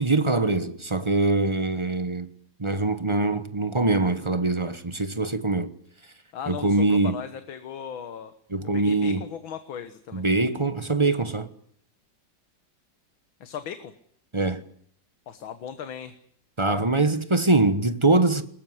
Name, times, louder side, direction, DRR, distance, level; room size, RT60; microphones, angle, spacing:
voice 1, 0.0-2.3 2.6-5.7 6.5-7.2 8.5-9.2 10.1-11.5 14.3-14.6 16.6-18.4, right 2 dB, 20° right, 0.9 m, -23 dB
voice 2, 6.3-8.3 8.7-10.3 13.4-13.9 15.3-16.2, left 8 dB, 90° left, 2.1 m, -37 dB
21.0 x 20.0 x 9.6 m
omnidirectional pair, 2.1 m